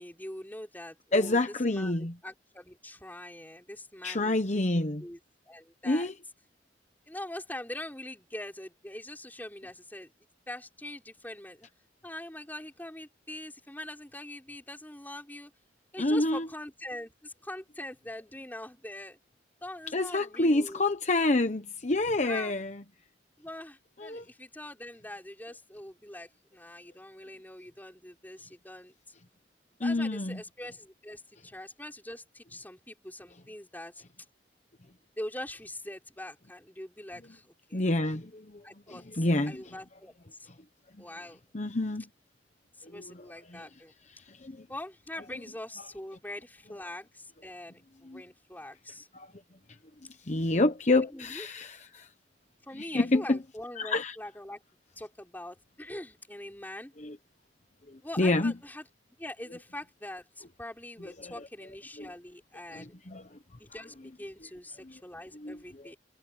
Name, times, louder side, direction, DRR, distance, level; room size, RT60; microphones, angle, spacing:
voice 1, 0.0-1.4 1.7-5.2 5.5-6.1 7.1-10.1 10.5-11.7 12.0-15.5 15.9-19.2 19.6-20.8 22.2-22.5 23.4-28.9 29.8-34.0 35.2-37.8 38.6-40.5 41.0-41.4 42.8-43.9 44.7-49.1 50.9-51.5 52.6-54.6 55.0-56.9 58.0-58.8 59.2-62.9 63.6-66.0, left 1 dB, 10° left, 4.5 m, -43 dB
voice 2, 1.1-2.1 4.0-5.0 5.8-6.1 16.0-16.5 19.9-22.8 24.0-24.2 29.8-30.4 37.7-39.7 41.5-42.0 42.8-43.7 44.1-44.7 48.0-48.2 49.1-49.3 50.2-52.1 52.7-53.4 53.8-54.2 57.0-57.2 57.9-58.5 61.2-61.5 62.0-62.1 62.7-63.4 64.8-64.9 65.3-65.6, left 2 dB, 40° left, 1.0 m, -28 dB
head